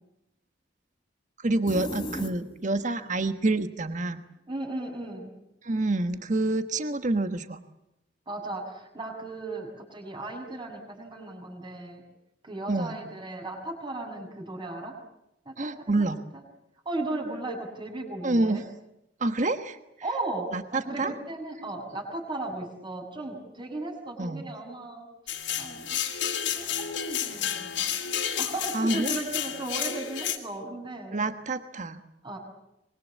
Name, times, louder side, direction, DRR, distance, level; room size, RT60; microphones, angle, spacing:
voice 1, 1.4-4.2 5.6-7.6 12.7-13.0 15.6-16.2 18.2-18.7 19.2-19.8 20.5-21.1 24.2-24.5 28.7-29.1 31.1-32.0, right 2 dB, 45° right, 9 dB, 1.3 m, -27 dB
sound 1, 1.7-2.9, left 1 dB, 25° left, 3.2 m, -35 dB
voice 2, 4.5-5.3 8.3-12.0 12.4-14.9 15.4-16.1 16.8-18.6 20.0-25.1 25.6-26.0 26.5-27.9 28.4-31.2 32.2-32.4, right 2 dB, 25° right, 2 dB, 6.8 m, -36 dB
sound 2, 25.3-30.4, left 9 dB, 85° left, 3.2 m, -31 dB
25.0 x 23.0 x 8.4 m, 0.86 s
head